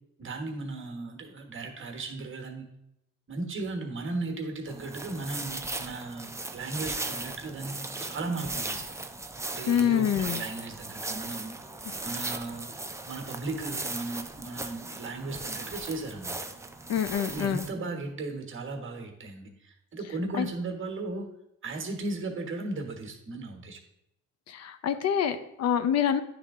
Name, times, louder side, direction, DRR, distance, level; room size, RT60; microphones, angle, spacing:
voice 1, 0.2-2.7 3.3-8.9 9.5-11.5 12.0-12.7 13.1-16.4 17.2-21.3 21.6-23.8, right 3 dB, 40° right, 3 dB, 1.2 m, -36 dB
sound 1, 4.7-17.7, right 2 dB, 10° right, 0.5 m, -37 dB
voice 2, 9.7-10.4 16.9-17.7 20.4-20.5 24.5-26.2, left 8 dB, 60° left, 10 dB, 0.5 m, -26 dB
9.6 x 3.4 x 3.6 m, 0.82 s
cardioid pair, 90°, 30 cm